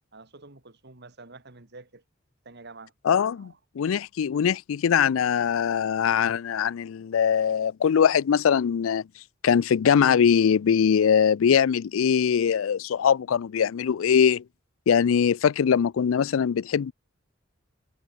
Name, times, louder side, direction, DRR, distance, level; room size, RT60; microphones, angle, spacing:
voice 1, 0.1-2.0 2.4-2.9 3.4-3.6, right 3 dB, 55° right, 2.4 m, -47 dB
voice 2, 3.0-9.0 9.4-14.4 14.9-16.9, left 7 dB, 80° left, 0.4 m, -22 dB
head